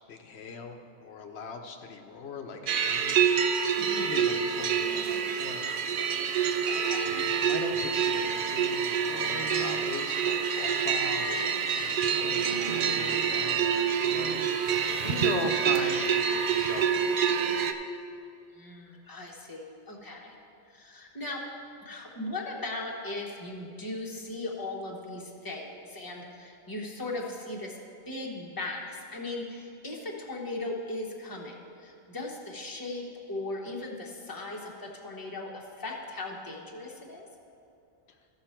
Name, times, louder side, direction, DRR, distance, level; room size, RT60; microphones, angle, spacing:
voice 1, 0.1-3.5 3.8-5.8 7.0-11.5 11.8-17.6 38.1-38.2, left 4 dB, 80° left, 4 dB, 0.9 m, -40 dB
sound 1, 2.7-17.7, right 7 dB, 60° right, 0.7 m, -27 dB
voice 2, 3.8-4.2 6.7-7.1 15.1-15.3 18.5-20.3 20.7-21.4 21.8-27.8 28.1-31.5 31.8-37.2, left 2 dB, 20° left, -1 dB, 1.1 m, -38 dB
14.5 x 5.7 x 4.4 m, 2.6 s
omnidirectional pair, 1.1 m